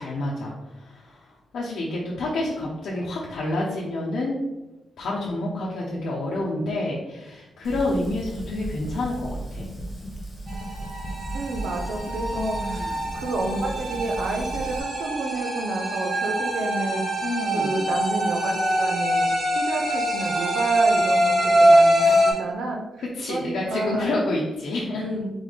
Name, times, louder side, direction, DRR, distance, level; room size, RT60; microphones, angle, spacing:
voice 1, 0.0-4.4 5.0-9.7 12.4-13.1 17.2-17.7 23.0-25.1, left 2 dB, 80° left, -5 dB, 0.8 m, -29 dB
Fire, 7.6-14.8, right 1 dB, 15° left, 0.7 m, -35 dB
sound 1, 10.5-22.3, equal, 30° right, 1.5 m, -23 dB
voice 2, 11.3-17.1 17.5-22.8 23.3-24.1 25.0-25.3, right 2 dB, 75° right, 2 dB, 0.8 m, -30 dB
4.0 x 3.3 x 4.0 m, 1.0 s
wide cardioid pair, 160°, 0 cm